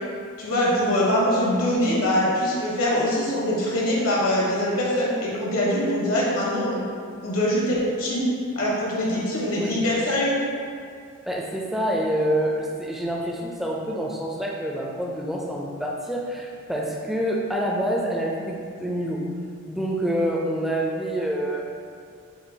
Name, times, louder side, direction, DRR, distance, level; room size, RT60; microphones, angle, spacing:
voice 1, 0.4-6.8 7.2-8.3 8.6-10.3, left 1 dB, 75° left, -5 dB, 1.1 m, -23 dB
voice 2, 11.3-19.2 19.7-21.7, equal, ahead, -3 dB, 0.4 m, -27 dB
6.9 x 2.4 x 2.7 m, 2.4 s
head